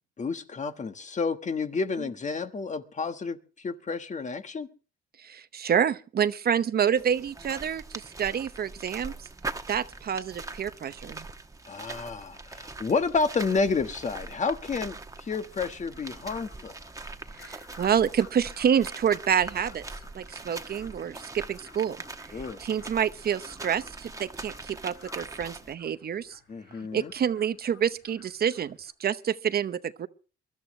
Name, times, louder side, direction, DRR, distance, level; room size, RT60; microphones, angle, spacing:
voice 1, 0.2-4.7 11.7-16.7 22.3-22.6 26.5-27.1, left 4 dB, 35° left, 1.4 m, -30 dB
voice 2, 5.2-9.1 9.7-11.3 17.4-19.8 20.1-22.0 22.3-26.4 26.9-30.1, right 8 dB, 50° right, 0.8 m, -28 dB
sound 1, 7.0-25.7, right 3 dB, 15° right, 1.3 m, -42 dB
sound 2, 14.4-28.9, left 5 dB, 75° left, 4.2 m, -56 dB
23.0 x 13.0 x 3.2 m
cardioid pair, 90°, 20 cm